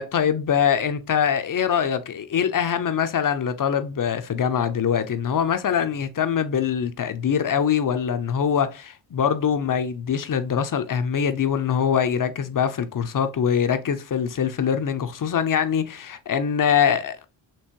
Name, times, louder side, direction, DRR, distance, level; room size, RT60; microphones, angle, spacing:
voice 1, 0.0-17.3, left 8 dB, 40° left, 0.7 m, -23 dB
4.5 x 2.9 x 2.9 m
cardioid pair, 65°, 50 cm